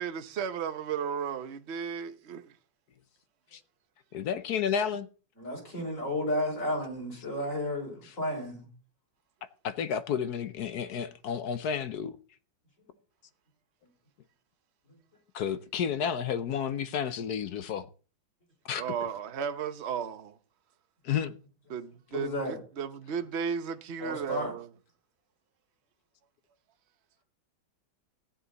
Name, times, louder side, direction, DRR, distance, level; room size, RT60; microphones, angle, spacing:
voice 1, 0.0-2.5 18.8-20.4 21.7-24.7, right 7 dB, 45° right, 0.9 m, -34 dB
voice 2, 4.1-5.1 9.6-12.1 15.3-17.9 18.7-18.8 21.0-21.3, left 8 dB, 65° left, 1.1 m, -31 dB
voice 3, 5.4-8.7 22.1-22.6 24.0-24.5, left 1 dB, 40° left, 5.6 m, -32 dB
15.5 x 10.0 x 4.0 m
omnidirectional pair, 2.2 m